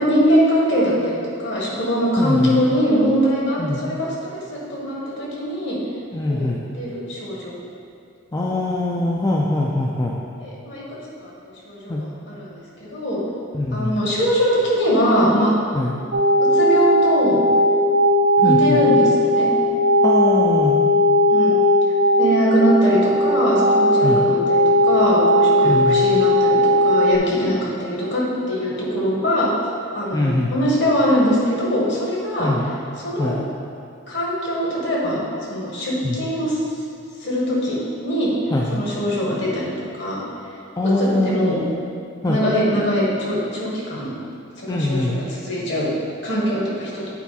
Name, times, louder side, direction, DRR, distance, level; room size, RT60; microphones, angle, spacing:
voice 1, 0.0-5.8 6.3-7.6 10.4-11.3 11.6-13.2 13.7-15.5 16.4-17.4 18.4-19.5 21.3-21.6 22.2-29.5 29.9-32.5 33.0-33.4 34.1-35.2 35.5-36.6 37.2-38.3 38.7-39.7 40.0-40.2 40.8-41.6 42.3-44.1 44.6-45.9 46.2-47.0, equal, 55° left, -4 dB, 1.7 m, -22 dB
voice 2, 2.2-2.6 3.6-3.9 6.1-6.6 8.3-10.1 11.9-12.0 13.5-14.0 15.7-15.9 18.4-18.8 20.0-20.8 24.0-24.2 25.6-26.0 30.1-30.5 32.4-32.7 33.2-33.4 36.0-36.2 38.5-38.8 40.8-41.7 42.2-42.4 44.7-45.2, left 2 dB, 15° left, -3 dB, 0.4 m, -22 dB
sound 1, 16.1-27.2, equal, 55° right, 0.4 m, -17 dB
8.3 x 4.5 x 4.2 m, 2.3 s
head